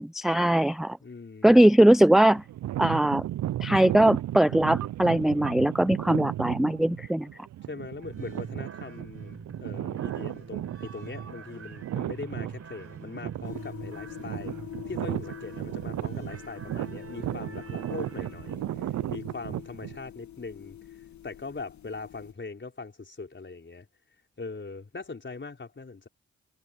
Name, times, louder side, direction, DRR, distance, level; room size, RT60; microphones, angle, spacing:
voice 1, 0.0-1.0 1.4-2.4 2.8-3.2 3.6-7.3, right 1 dB, ahead, 0.5 m, -20 dB
voice 2, 1.0-1.6 7.6-14.5 14.9-20.8 21.2-23.9 24.4-26.1, left 4 dB, 40° left, 4.5 m, -41 dB
sound 1, 2.3-20.0, right 13 dB, 65° right, 0.6 m, -35 dB
sound 2, 8.0-18.6, right 5 dB, 50° right, 7.2 m, -45 dB
sound 3, 13.4-22.3, left 12 dB, 70° left, 2.6 m, -45 dB
hypercardioid pair, 40°, 30 cm